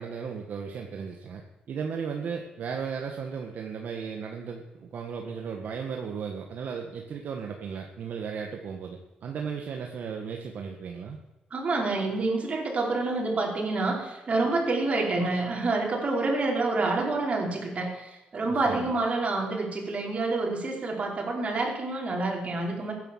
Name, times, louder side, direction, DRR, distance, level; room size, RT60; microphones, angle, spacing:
voice 1, 0.0-11.2 18.5-18.9, right 6 dB, 70° right, 2 dB, 1.7 m, -35 dB
voice 2, 11.5-22.9, right 3 dB, 45° right, -1 dB, 5.0 m, -28 dB
15.5 x 10.5 x 7.5 m, 1.0 s
cardioid pair, 90°, 3 cm